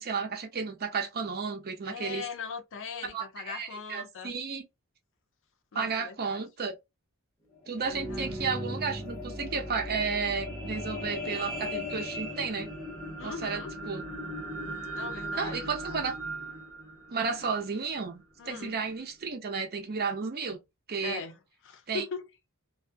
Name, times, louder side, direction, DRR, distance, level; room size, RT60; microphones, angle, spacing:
voice 1, 0.0-2.3 3.0-4.7 5.7-6.7 7.7-12.7 13.2-13.6 13.9-14.1 15.4-16.1 17.1-20.6 20.9-21.2 21.9-22.0, right 5 dB, 45° right, 0.6 m, -33 dB
voice 2, 1.9-4.3 5.7-6.5 7.9-8.4 13.2-13.7 14.9-16.0 18.4-18.8 21.0-22.3, left 6 dB, 60° left, 0.6 m, -40 dB
sound 1, 7.6-18.1 18.7-18.8, equal, 5° left, 0.8 m, -37 dB
2.4 x 2.1 x 2.5 m
head